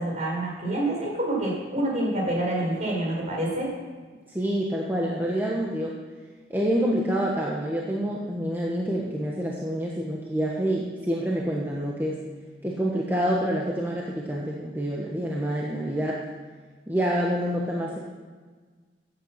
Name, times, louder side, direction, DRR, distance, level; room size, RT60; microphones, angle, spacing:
voice 1, 0.0-3.7, right 1 dB, 45° right, -2 dB, 4.3 m, -27 dB
voice 2, 4.3-5.9 6.5-12.2 12.6-16.2 16.9-18.0, equal, 10° right, -3 dB, 1.3 m, -27 dB
15.0 x 8.8 x 5.9 m, 1.4 s
head